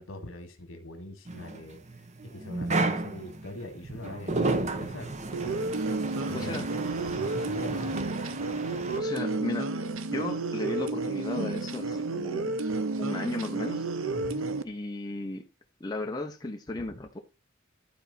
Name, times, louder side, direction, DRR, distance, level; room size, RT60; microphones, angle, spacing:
voice 1, 0.0-1.8 2.2-5.1 6.3-6.7 7.1-8.0 14.1-14.5, left 1 dB, 75° left, 1.9 m, -42 dB
sound 1, 1.3-9.0, right 2 dB, 35° right, 0.9 m, -33 dB
sound 2, 5.3-14.6, right 3 dB, 80° right, 0.7 m, -31 dB
voice 2, 6.3-6.7 8.9-9.7 10.1-12.5 13.0-13.8 14.6-15.5 15.8-17.2, left 2 dB, 20° left, 0.8 m, -35 dB
11.5 x 4.2 x 4.2 m
head